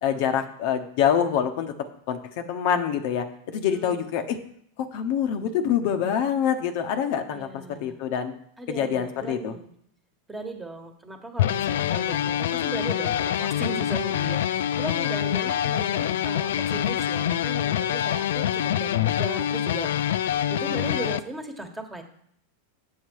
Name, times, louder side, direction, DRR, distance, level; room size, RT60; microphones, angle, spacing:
voice 1, 0.0-1.7 2.1-4.4 4.9-8.3 8.7-9.5, left 8 dB, 60° left, 7 dB, 0.8 m, -25 dB
voice 2, 3.7-4.0 7.3-8.0 8.6-9.8 10.3-22.0, right 2 dB, 10° right, 5 dB, 1.4 m, -37 dB
sound 1, 11.4-21.2, left 10 dB, 75° left, 0.3 m, -25 dB
7.5 x 6.5 x 4.7 m, 0.67 s
hypercardioid pair, 105°, 0 cm